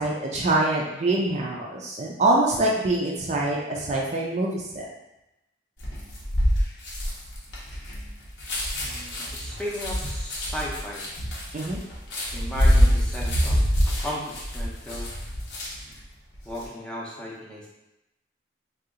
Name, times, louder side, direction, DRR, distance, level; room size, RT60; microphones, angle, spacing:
voice 1, 0.0-4.9 11.5-11.8, right 2 dB, 40° right, -2 dB, 0.4 m, -24 dB
sound 1, 5.8-16.0 16.3-16.7, equal, 85° left, 0.8 m, -25 dB
voice 2, 8.8-11.0 12.3-13.6 13.8-15.1 16.4-17.7, equal, 5° left, -5 dB, 0.6 m, -35 dB
2.7 x 2.4 x 3.7 m, 0.93 s
head